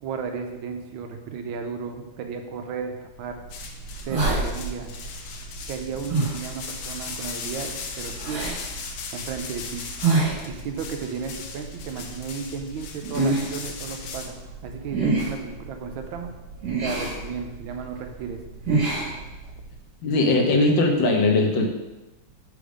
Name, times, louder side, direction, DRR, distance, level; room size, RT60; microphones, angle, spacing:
voice 1, 0.0-3.4 4.0-5.0 5.7-8.5 9.1-9.8 10.4-14.3 14.6-16.3 16.8-18.4, right 6 dB, 85° right, 5 dB, 1.5 m, -34 dB
sound 1, 3.2-19.8, right 3 dB, 40° right, 2.2 m, -30 dB
sound 2, 3.5-14.3, left 5 dB, 90° left, 1.5 m, -38 dB
voice 2, 20.0-21.7, left 2 dB, 70° left, 2 dB, 1.5 m, -20 dB
5.1 x 4.3 x 5.0 m, 1.0 s
omnidirectional pair, 2.2 m